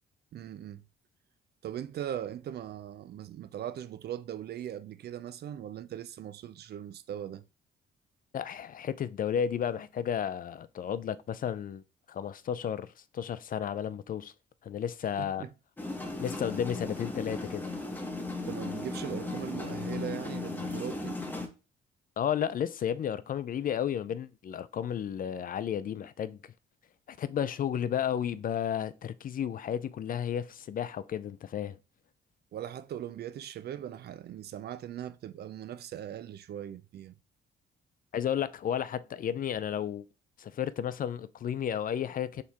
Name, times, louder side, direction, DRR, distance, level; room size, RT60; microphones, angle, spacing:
voice 1, 0.3-0.8 1.6-7.4 15.2-15.5 18.5-21.2 32.5-37.2, right 10 dB, 55° right, 0.4 m, -39 dB
voice 2, 8.3-11.8 12.1-14.3 14.6-15.5 16.2-17.7 22.2-26.4 27.1-31.7 38.1-40.1 40.4-42.4, left 9 dB, 45° left, 0.4 m, -33 dB
sound 1, 15.8-21.5, left 2 dB, 10° left, 1.0 m, -36 dB
4.5 x 3.0 x 3.4 m
cardioid pair, 90°, 20 cm